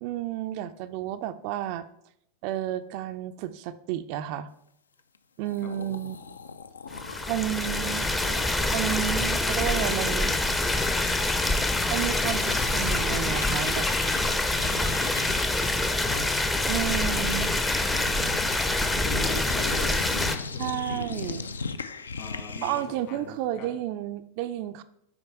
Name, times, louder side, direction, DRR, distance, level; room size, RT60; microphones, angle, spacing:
voice 1, 0.0-1.9 2.4-4.5 5.4-6.2 7.3-8.1 8.7-10.4 11.9-13.9 16.7-17.5 20.6-21.5 22.6-24.8, right 12 dB, 45° right, 11 dB, 0.3 m, -31 dB
sound 1, 5.1-5.2 5.4-11.6 11.9-23.0, left 4 dB, 70° left, 0.4 m, -39 dB
voice 2, 5.6-6.0 9.5-10.6 16.0-16.4 17.9-18.3 18.7-21.5 21.7-21.9 22.2-23.7, left 3 dB, 45° left, 3 dB, 1.6 m, -40 dB
sound 2, 6.9-20.4, left 2 dB, 10° left, 0.5 m, -26 dB
6.1 x 4.4 x 4.5 m, 0.75 s
figure-of-eight pair, 90°, 0 cm